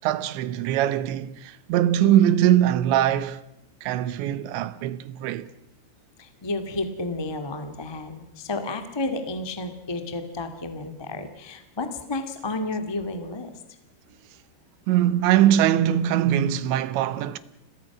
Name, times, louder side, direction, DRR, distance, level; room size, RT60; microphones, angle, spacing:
voice 1, 0.0-3.4 3.8-5.5 14.9-17.4, right 11 dB, 85° right, 3.3 m, -22 dB
voice 2, 6.2-13.5, left 2 dB, 20° left, 0.6 m, -31 dB
30.0 x 22.5 x 6.1 m
omnidirectional pair, 5.1 m